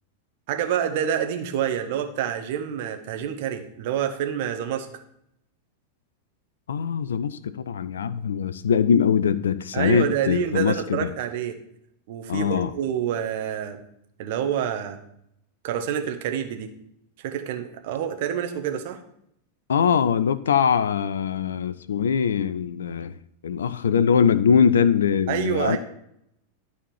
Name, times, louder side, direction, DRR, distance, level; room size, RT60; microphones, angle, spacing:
voice 1, 0.5-4.9 9.7-11.6 12.1-13.8 14.2-15.0 15.6-16.7 17.2-19.0 25.3-25.8, right 9 dB, 50° right, 1.3 m, -27 dB
voice 2, 6.7-11.1 12.3-12.7 19.7-25.8, left 7 dB, 65° left, 0.5 m, -22 dB
12.5 x 4.3 x 7.1 m
figure-of-eight pair, 90°, 0 cm